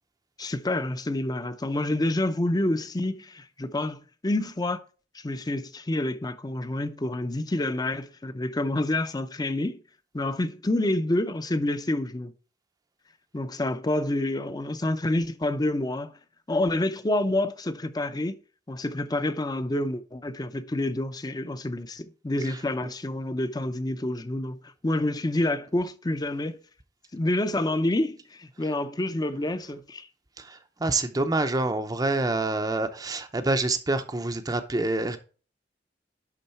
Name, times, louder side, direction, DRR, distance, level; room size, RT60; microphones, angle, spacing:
voice 1, 0.4-4.8 5.1-9.8 10.1-12.3 13.3-16.1 16.5-18.4 18.7-26.6 27.1-30.1, left 1 dB, 20° left, 0.6 m, -28 dB
voice 2, 22.5-22.9 30.4-35.2, right 2 dB, 20° right, 0.6 m, -27 dB
11.0 x 3.8 x 4.4 m
head